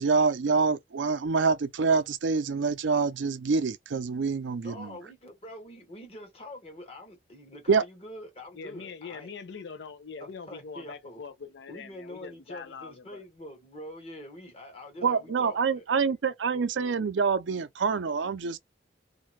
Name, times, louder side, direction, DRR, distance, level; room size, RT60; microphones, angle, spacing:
voice 1, 0.0-5.0 7.7-7.8 15.0-18.6, right 5 dB, 85° right, 0.5 m, -26 dB
voice 2, 4.6-9.3 10.2-11.2 11.7-15.8, left 1 dB, 30° left, 1.0 m, -45 dB
voice 3, 8.5-13.2 15.2-15.4, left 5 dB, 70° left, 0.5 m, -43 dB
2.6 x 2.2 x 3.1 m
head